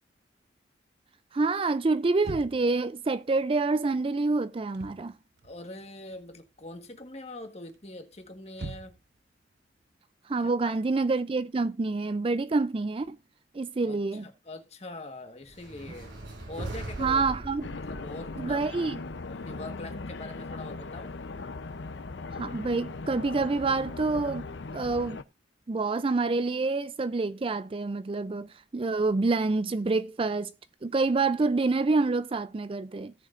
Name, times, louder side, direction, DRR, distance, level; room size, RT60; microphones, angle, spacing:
voice 1, 1.3-5.1 10.3-13.2 13.5-14.2 17.0-17.7 18.4-19.0 22.4-24.4 24.7-25.2 25.7-30.5 30.8-33.1, right 3 dB, 30° right, 0.4 m, -27 dB
sound 1, 2.2-2.8 4.6-5.1 5.4-6.3 6.6-7.0 7.7-9.2, right 3 dB, 65° right, 0.7 m, -42 dB
voice 2, 5.4-9.0 10.4-10.7 13.8-16.1 16.5-17.2 17.8-19.0 19.3-21.1, left 2 dB, 35° left, 1.4 m, -43 dB
sound 2, 15.5-19.7, right 2 dB, 85° right, 5.0 m, -41 dB
sound 3, 17.6-25.2, left 3 dB, 80° left, 0.7 m, -39 dB
17.0 x 6.5 x 2.5 m
head